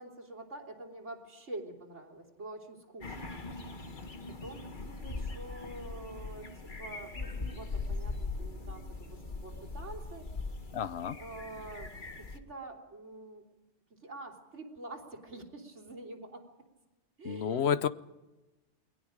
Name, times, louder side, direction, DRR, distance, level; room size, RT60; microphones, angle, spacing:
voice 1, 0.0-3.4 3.7-3.8 4.2-6.5 6.8-10.3 11.2-11.9 12.2-13.4 13.9-16.4 17.2-17.7, right 2 dB, 75° right, 2 dB, 3.6 m, -46 dB
sound 1, 3.0-12.4, left 3 dB, 45° left, 1.7 m, -40 dB
voice 2, 10.7-11.2 17.2-17.9, left 8 dB, 60° left, 14 dB, 1.1 m, -30 dB
29.5 x 21.5 x 5.1 m, 1.1 s
omnidirectional pair, 1.2 m